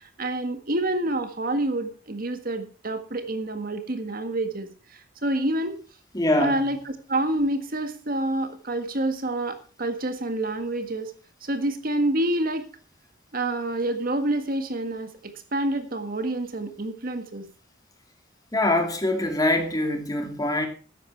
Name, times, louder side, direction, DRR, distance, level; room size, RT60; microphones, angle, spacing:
voice 1, 0.0-5.8 6.4-11.1 11.4-12.6 13.3-17.5, right 1 dB, 50° right, 1.7 m, -28 dB
voice 2, 6.1-6.6 18.5-20.7, left 1 dB, 20° left, 2.5 m, -24 dB
14.0 x 10.5 x 4.6 m
head